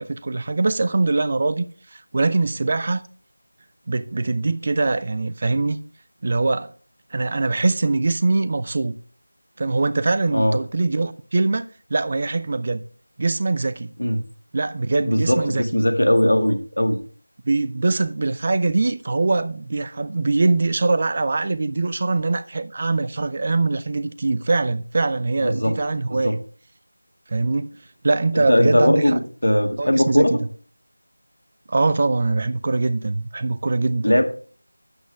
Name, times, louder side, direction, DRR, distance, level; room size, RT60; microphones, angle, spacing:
voice 1, 0.0-3.0 3.9-5.8 6.2-6.7 7.1-8.9 9.6-12.8 13.2-13.9 14.5-15.6 17.5-26.4 27.3-27.7 28.0-29.2 29.8-30.4 31.7-34.2, right 3 dB, 30° right, 0.4 m, -22 dB
voice 2, 15.0-17.0 25.4-25.8 26.1-26.3 28.3-30.4 34.0-34.2, left 1 dB, 75° left, 2.0 m, -19 dB
9.3 x 8.1 x 3.4 m
figure-of-eight pair, 170°, 0 cm